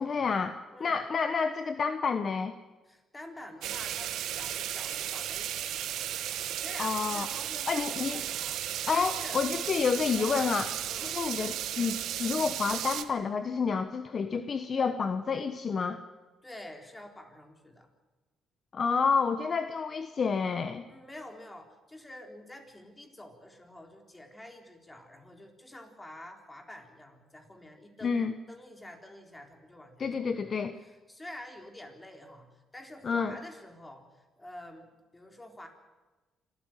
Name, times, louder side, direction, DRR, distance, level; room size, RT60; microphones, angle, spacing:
voice 1, 0.0-2.5 6.8-7.3 7.7-8.2 8.9-10.7 11.0-16.0 18.7-20.8 28.0-28.3 30.0-30.8 33.0-33.4, left 5 dB, 45° left, 9 dB, 1.2 m, -29 dB
voice 2, 2.9-9.4 10.2-10.5 10.9-11.2 16.4-17.9 20.9-30.6 30.8-35.7, left 1 dB, 15° left, 4 dB, 4.0 m, -48 dB
sound 1, 3.6-13.0, right 11 dB, 80° right, 1.3 m, -35 dB
26.5 x 13.5 x 9.3 m, 1.2 s
cardioid pair, 90°, 0 cm